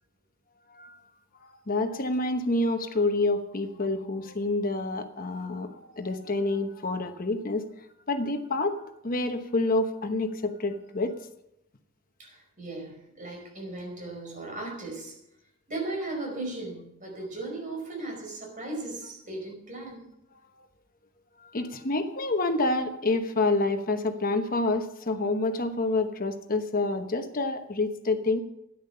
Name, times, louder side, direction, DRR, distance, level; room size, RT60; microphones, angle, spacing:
voice 1, 1.7-7.6 8.1-11.1 21.4-28.4, left 2 dB, 40° left, 8 dB, 1.0 m, -28 dB
voice 2, 12.2-15.1 15.7-20.0, right 2 dB, 40° right, 0 dB, 5.2 m, -37 dB
13.0 x 10.5 x 5.7 m, 0.83 s
head